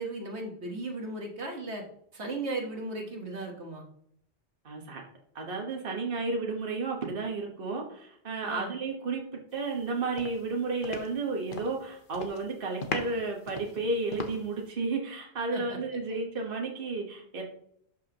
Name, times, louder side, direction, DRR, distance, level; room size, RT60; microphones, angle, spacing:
voice 1, 0.0-1.8 2.1-3.8 8.4-8.7 15.5-15.8, right 2 dB, 70° right, 1 dB, 1.7 m, -36 dB
voice 2, 4.6-5.0 5.3-17.4, right 3 dB, 50° right, 1 dB, 1.5 m, -32 dB
sound 1, 9.7-9.9 10.2-11.8 12.1-12.5 12.8-14.7, left 3 dB, 50° left, 1.1 m, -38 dB
12.0 x 5.7 x 3.0 m, 0.68 s
omnidirectional pair, 1.2 m